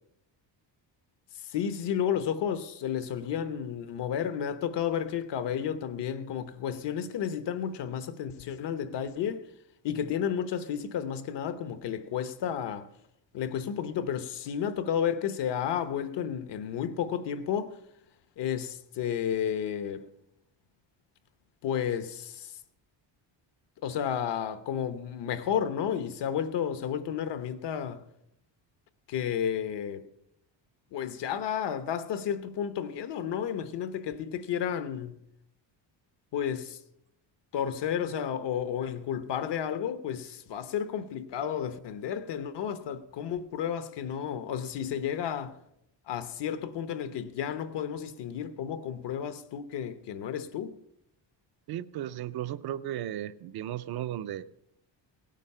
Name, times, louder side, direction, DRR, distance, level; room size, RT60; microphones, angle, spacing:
voice 1, 1.4-9.5 9.8-12.9 13.3-17.8 18.4-20.0 21.6-22.6 23.8-28.1 29.1-30.1 30.9-35.2 36.3-36.8 37.5-45.6 46.1-50.7, left 8 dB, 65° left, 1.0 m, -32 dB
voice 2, 51.7-54.4, right 12 dB, 60° right, 0.5 m, -35 dB
17.5 x 9.2 x 5.5 m
cardioid pair, 175°, 44 cm